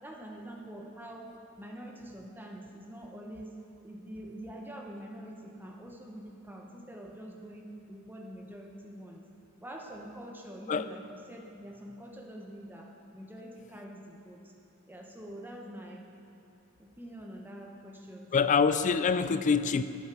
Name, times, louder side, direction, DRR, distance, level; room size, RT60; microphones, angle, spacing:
voice 1, 0.0-1.3 1.6-3.5 3.8-9.2 9.6-14.5 14.9-16.0 16.8-18.6, right 1 dB, 10° right, 0 dB, 1.0 m, -45 dB
voice 2, 18.3-19.8, left 5 dB, 35° left, 12 dB, 0.3 m, -25 dB
9.4 x 7.7 x 6.1 m, 2.8 s
head